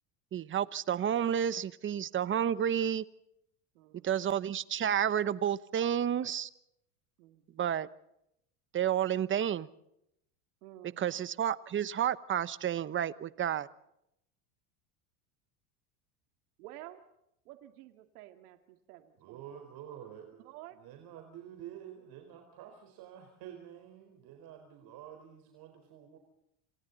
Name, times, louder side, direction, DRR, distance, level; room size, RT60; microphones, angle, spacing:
voice 1, 0.3-3.0 4.0-6.5 7.6-7.9 8.7-9.7 11.0-13.7, right 9 dB, 25° right, 1.0 m, -30 dB
voice 2, 3.7-4.2 7.2-7.7 10.6-11.2 16.6-17.0 17.4-19.6 20.4-20.8, right 14 dB, 80° right, 2.5 m, -52 dB
voice 3, 19.2-26.2, right 10 dB, 55° right, 4.4 m, -49 dB
28.0 x 26.5 x 4.0 m
supercardioid pair, 120°, 44 cm